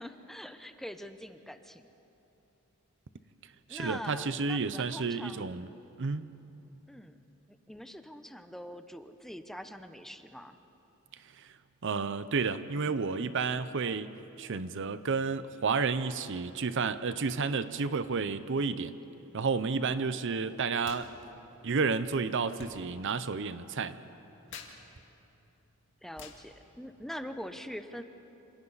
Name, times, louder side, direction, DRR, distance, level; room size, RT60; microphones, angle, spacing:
voice 1, 0.0-1.9 3.7-5.6 6.9-7.2 7.5-10.6 26.0-28.0, equal, ahead, 8 dB, 0.7 m, -43 dB
voice 2, 3.7-5.7 6.0-6.3 11.4-11.5 11.8-18.9 19.3-21.1 21.6-24.0, right 4 dB, 60° right, 13 dB, 0.7 m, -31 dB
sound 1, 20.8-21.1 21.3-27.5, left 5 dB, 65° left, 1.9 m, -53 dB
27.0 x 27.0 x 4.1 m, 3.0 s
head